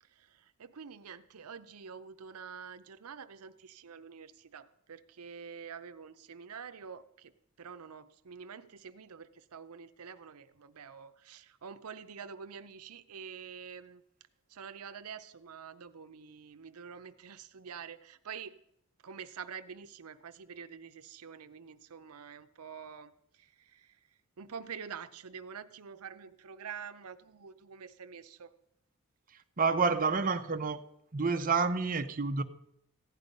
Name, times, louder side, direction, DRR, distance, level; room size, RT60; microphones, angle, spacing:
voice 1, 0.0-7.3 7.6-14.0 14.5-18.6 19.0-24.0 24.4-28.5, right 6 dB, 85° right, 10 dB, 0.6 m, -47 dB
voice 2, 29.6-30.8 31.1-32.4, right 4 dB, 40° right, 6 dB, 0.7 m, -28 dB
15.5 x 10.5 x 5.3 m, 0.74 s
head